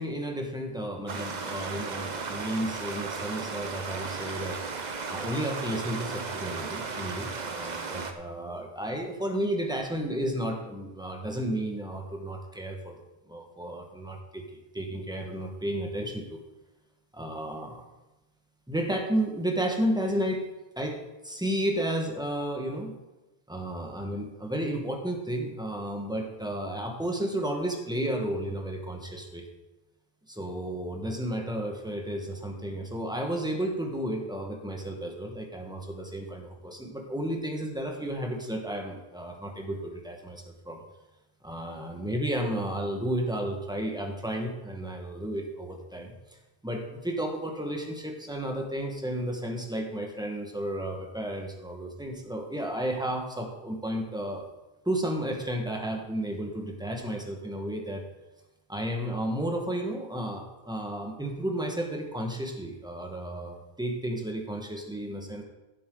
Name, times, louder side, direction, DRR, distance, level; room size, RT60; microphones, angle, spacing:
voice 1, 0.0-4.6 5.1-12.9 13.3-14.4 14.7-16.4 17.1-17.8 18.7-20.5 20.8-22.9 23.5-29.5 30.3-40.8 41.4-46.1 46.6-54.5 54.8-58.0 58.7-65.4, right 1 dB, 5° right, 2 dB, 1.5 m, -32 dB
Stream, 1.1-8.1, right 4 dB, 45° right, 1.0 m, -35 dB
15.0 x 7.9 x 3.9 m, 1.0 s
omnidirectional pair, 1.0 m